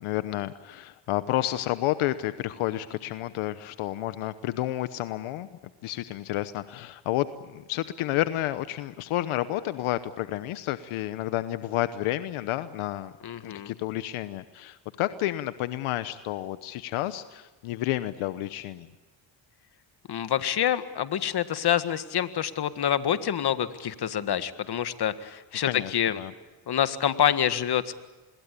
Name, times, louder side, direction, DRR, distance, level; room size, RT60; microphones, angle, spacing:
voice 1, 0.0-5.5 5.8-13.1 13.4-18.9 25.6-26.3, left 15 dB, 85° left, 12 dB, 1.1 m, -30 dB
voice 2, 13.2-13.7 20.1-26.2 26.7-28.0, left 10 dB, 50° left, 11 dB, 1.7 m, -27 dB
26.5 x 22.0 x 8.4 m, 1.2 s
cardioid pair, 85°, 49 cm